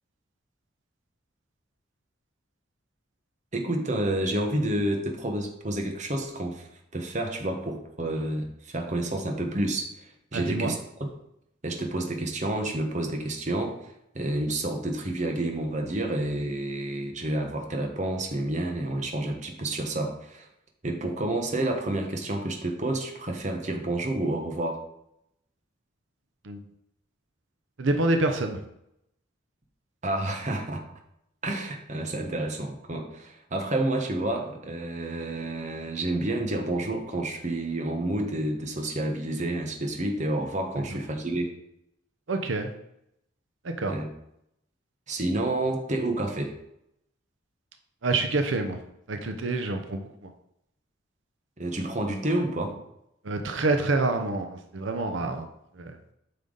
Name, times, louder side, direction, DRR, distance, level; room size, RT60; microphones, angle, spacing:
voice 1, 3.5-6.7 6.9-11.1 11.6-20.5 20.8-24.8 30.0-30.8 31.4-41.5 43.8-44.1 45.1-46.5 51.6-52.8, right 1 dB, 40° right, 3 dB, 1.1 m, -29 dB
voice 2, 10.3-10.7 26.4-26.6 27.8-28.6 42.3-42.7 43.6-43.9 48.0-48.8 49.1-50.3 53.2-55.5 55.8-56.0, right 2 dB, 80° right, 6 dB, 0.8 m, -27 dB
8.7 x 5.6 x 3.9 m, 0.79 s
head